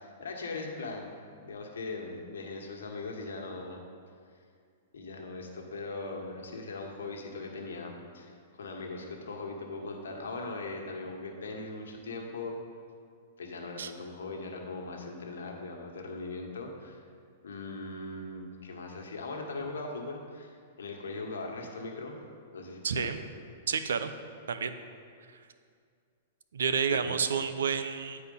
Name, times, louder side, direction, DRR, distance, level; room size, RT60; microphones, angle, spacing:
voice 1, 0.0-3.8 4.9-12.6 13.4-17.0 17.4-20.5 20.8-22.1 22.5-23.1 26.9-27.2, left 3 dB, 90° left, 1 dB, 1.3 m, -40 dB
voice 2, 22.8-23.2 23.7-24.1 24.5-24.7 26.5-28.2, right 6 dB, 90° right, 10 dB, 0.5 m, -29 dB
9.6 x 4.3 x 5.4 m, 2.2 s
hypercardioid pair, 140°, 0 cm